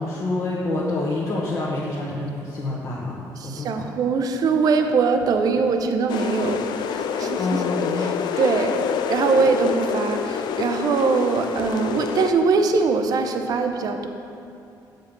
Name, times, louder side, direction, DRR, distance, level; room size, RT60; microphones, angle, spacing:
voice 1, 0.0-3.9 7.4-8.0, left 2 dB, 40° left, -6 dB, 1.1 m, -27 dB
voice 2, 3.4-7.6 8.0-8.8 9.1-14.1, right 4 dB, 55° right, 6 dB, 0.6 m, -22 dB
sound 1, 6.1-12.3, left 7 dB, 70° left, 0.4 m, -27 dB
7.4 x 5.3 x 5.2 m, 2.7 s
cardioid pair, 125°, 8 cm